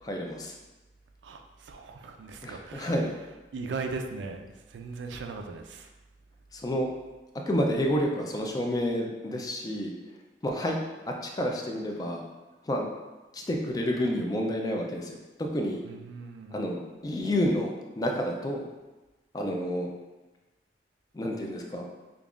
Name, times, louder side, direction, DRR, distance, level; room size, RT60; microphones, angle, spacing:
voice 1, 0.0-0.6 2.4-3.1 6.5-6.9 7.5-9.9 10.4-10.8 11.1-12.2 12.6-12.9 13.3-15.8 16.5-18.7 19.3-19.9 21.1-21.9, equal, 20° left, 1 dB, 0.3 m, -29 dB
voice 2, 1.2-3.0 3.5-5.9 15.8-16.6, right 4 dB, 80° right, 5 dB, 0.4 m, -38 dB
5.1 x 2.3 x 2.4 m, 1.1 s
head